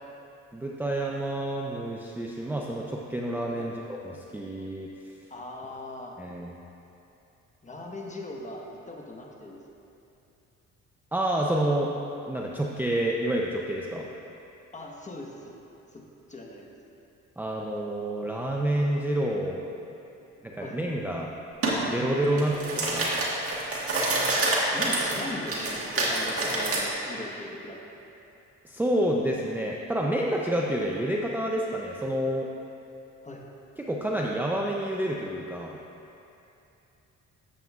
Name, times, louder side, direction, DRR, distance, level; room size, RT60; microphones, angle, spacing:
voice 1, 0.5-4.9 6.2-6.5 11.1-11.9 12.3-14.1 17.4-19.6 20.4-21.3 21.8-23.1 28.6-32.5 33.8-35.8, right 1 dB, 5° right, -2 dB, 0.5 m, -28 dB
voice 2, 5.3-6.2 7.6-9.6 14.7-15.5 15.9-16.0 16.3-16.7 19.8-19.9 20.3-20.8 22.3-22.4 24.3-24.4 24.7-28.0 33.2-33.4, left 1 dB, 25° left, -1 dB, 1.2 m, -40 dB
sound 1, 21.6-21.8 22.2-26.8, right 2 dB, 50° right, 1.6 m, -27 dB
12.5 x 7.5 x 2.4 m, 2.8 s
cardioid pair, 90°, 30 cm